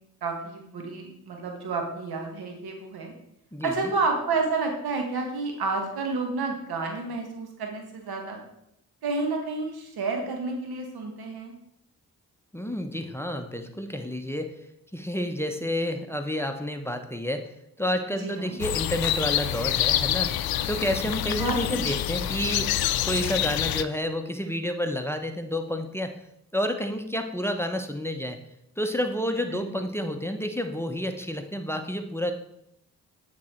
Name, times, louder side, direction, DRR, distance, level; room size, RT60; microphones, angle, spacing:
voice 1, 0.2-3.1 3.6-8.4 9.0-11.5 18.2-18.6 21.4-21.9 29.5-29.6, right 3 dB, 80° right, 2 dB, 1.5 m, -30 dB
voice 2, 3.5-3.9 12.5-14.5 14.9-17.5 17.8-22.7 23.0-26.1 26.5-28.4 28.8-32.3, left 1 dB, 5° left, 6 dB, 0.8 m, -30 dB
sound 1, 18.6-23.8, left 12 dB, 75° left, 0.5 m, -27 dB
8.3 x 3.9 x 4.4 m, 0.78 s
supercardioid pair, 45°, 37 cm